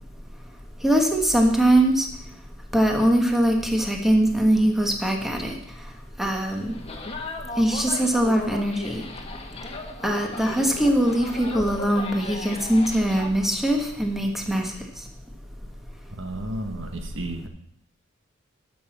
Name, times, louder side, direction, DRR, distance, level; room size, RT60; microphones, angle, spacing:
voice 1, 0.8-2.1 2.7-5.5 6.2-6.7 7.6-9.0 10.0-14.7, right 1 dB, ahead, 2 dB, 1.4 m, -21 dB
sound 1, 6.5-13.3, left 2 dB, 30° left, 1.4 m, -37 dB
voice 2, 16.2-17.5, right 1 dB, 65° right, 4 dB, 1.5 m, -32 dB
12.5 x 6.1 x 7.2 m, 0.71 s
head